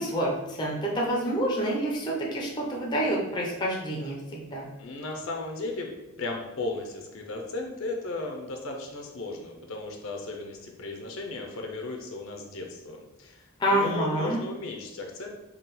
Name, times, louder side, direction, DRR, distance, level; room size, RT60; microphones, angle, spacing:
voice 1, 0.0-4.7 13.6-14.4, right 1 dB, 20° left, -2 dB, 0.6 m, -28 dB
voice 2, 4.8-5.9 6.2-13.5 13.7-15.3, left 2 dB, 65° left, 1 dB, 0.6 m, -35 dB
3.7 x 2.3 x 4.1 m, 0.96 s
head